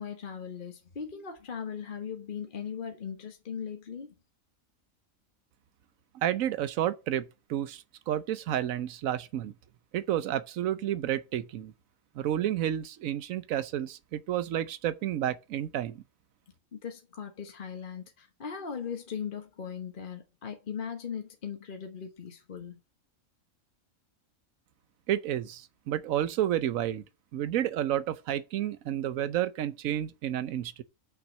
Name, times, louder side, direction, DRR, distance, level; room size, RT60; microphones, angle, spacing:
voice 1, 0.0-4.1 16.7-22.8, left 7 dB, 40° left, 1.1 m, -39 dB
voice 2, 6.1-9.5 9.9-11.7 12.1-16.0 25.1-27.0 27.3-30.8, right 11 dB, 75° right, 1.1 m, -30 dB
6.3 x 5.9 x 6.2 m
omnidirectional pair, 1.4 m